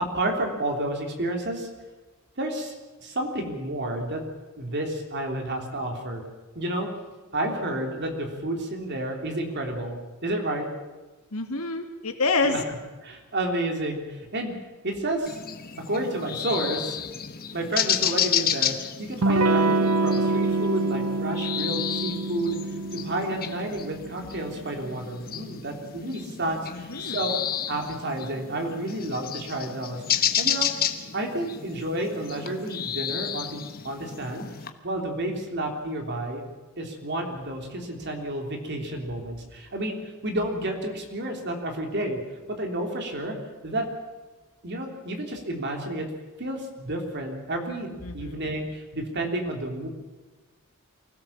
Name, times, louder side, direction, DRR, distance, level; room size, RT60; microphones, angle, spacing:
voice 1, 0.0-1.7 2.4-4.2 4.6-6.2 6.6-6.9 7.3-10.7 12.4-12.6 13.0-14.6 14.8-15.4 15.9-17.0 17.5-22.6 22.9-27.3 27.7-30.7 31.1-34.5 34.8-36.4 36.8-42.2 42.5-43.3 43.6-43.9 44.6-46.1 46.4-49.9, right 1 dB, 50° right, 3 dB, 3.4 m, -30 dB
voice 2, 11.3-12.6 26.7-27.2 48.0-48.4, left 3 dB, 70° left, 5 dB, 2.4 m, -27 dB
sound 1, 15.3-34.7, left 9 dB, 45° left, 1.2 m, -31 dB
Electric guitar / Strum, 19.2-24.6, right 2 dB, 75° right, 0.8 m, -26 dB
24.0 x 16.5 x 7.4 m, 1.2 s
head